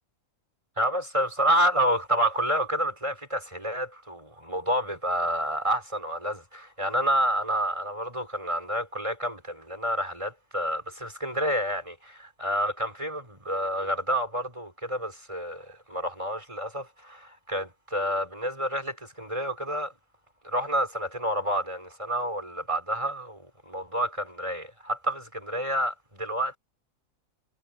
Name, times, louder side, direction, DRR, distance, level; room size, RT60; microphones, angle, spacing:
voice 1, 0.8-19.9 20.4-26.6, right 1 dB, 20° right, 6.8 m, -29 dB
omnidirectional pair, 1.5 m